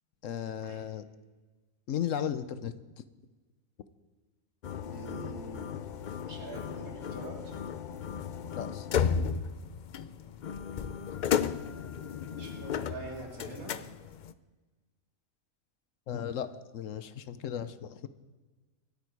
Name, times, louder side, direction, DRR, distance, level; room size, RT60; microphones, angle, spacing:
voice 1, 0.2-1.1 1.9-2.7 8.6-9.0 16.1-18.1, left 9 dB, 70° left, 13 dB, 1.0 m, -35 dB
sound 1, 4.6-14.3, left 7 dB, 85° left, 0.4 m, -34 dB
voice 2, 4.7-5.7 6.2-7.6 12.3-13.8, right 3 dB, 80° right, 0 dB, 3.4 m, -45 dB
25.5 x 9.1 x 4.6 m, 1.3 s
omnidirectional pair, 1.5 m